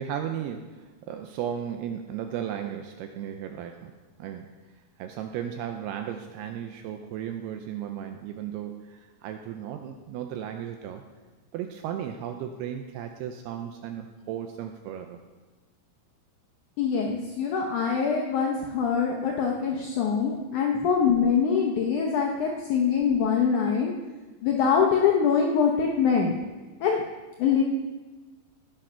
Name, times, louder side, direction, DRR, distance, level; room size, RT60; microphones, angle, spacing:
voice 1, 0.0-3.9 4.2-4.6 5.0-11.0 11.5-15.2 20.7-20.9, right 9 dB, 80° right, 5 dB, 2.5 m, -35 dB
voice 2, 16.8-23.9 24.4-26.4 26.8-27.0 27.4-27.6, left 6 dB, 85° left, 0 dB, 1.7 m, -24 dB
17.0 x 6.3 x 5.6 m, 1.3 s
omnidirectional pair, 4.9 m